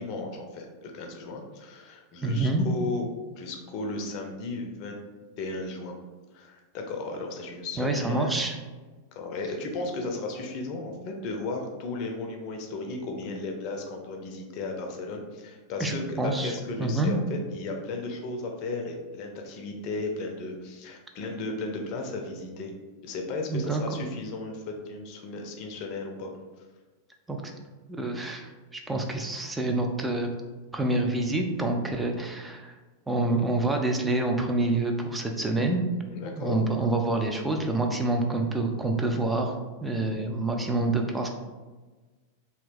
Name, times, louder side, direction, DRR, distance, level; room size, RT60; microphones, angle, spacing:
voice 1, 0.0-3.0 3.4-5.0 5.4-6.0 6.3-8.3 9.1-22.7 23.0-26.3 36.1-36.6, left 3 dB, 45° left, 3 dB, 0.6 m, -35 dB
voice 2, 2.2-2.7 7.8-8.5 15.8-16.5 16.8-17.2 23.5-24.0 27.3-27.4 27.9-30.3 30.7-32.7 33.1-35.8 36.2-39.5 39.8-41.3, right 2 dB, 10° right, 2 dB, 0.5 m, -27 dB
2.9 x 2.6 x 3.5 m, 1.3 s
figure-of-eight pair, 90°, 0 cm